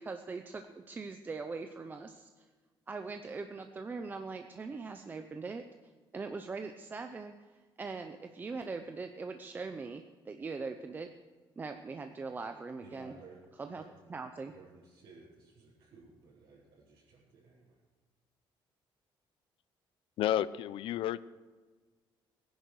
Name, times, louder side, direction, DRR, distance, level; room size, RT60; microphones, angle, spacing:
voice 1, 0.0-2.4 2.9-5.6 6.1-7.3 7.8-11.1 11.6-13.2 13.6-13.8 14.1-14.5, right 4 dB, 20° right, 0.6 m, -41 dB
voice 2, 12.8-13.4 13.7-14.1 14.5-17.8, right 4 dB, 65° right, 4.6 m, -56 dB
voice 3, 20.2-21.2, left 11 dB, 70° left, 0.6 m, -31 dB
18.0 x 10.5 x 6.5 m
cardioid pair, 170°, 9 cm